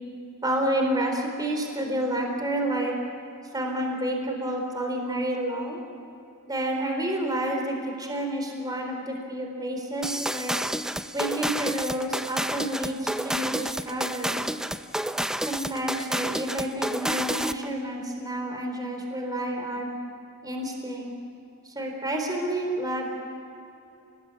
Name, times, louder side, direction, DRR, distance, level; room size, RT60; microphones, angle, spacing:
voice 1, 0.4-2.9 3.5-5.8 6.4-10.6 11.1-14.5 15.5-19.9 20.4-21.1 21.6-23.1, right 1 dB, 20° right, 2 dB, 4.0 m, -29 dB
sound 1, 10.0-17.7, right 1 dB, 5° right, 0.5 m, -30 dB
30.0 x 20.0 x 8.5 m, 2.8 s
head